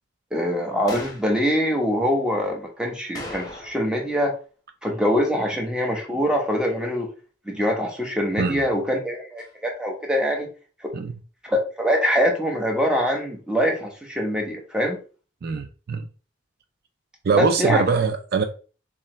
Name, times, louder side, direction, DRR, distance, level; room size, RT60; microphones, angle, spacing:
voice 1, 0.3-4.3 4.8-7.1 7.5-10.5 10.8-10.9 11.4-15.0 17.3-17.8, equal, 5° right, 0.8 m, -24 dB
sound 1, 0.9-1.3 3.1-4.0 4.3-4.4 9.4-9.5, left 1 dB, 20° left, 1.0 m, -38 dB
voice 2, 15.4-16.1 17.2-18.4, right 5 dB, 55° right, 0.4 m, -23 dB
3.7 x 3.1 x 3.1 m
head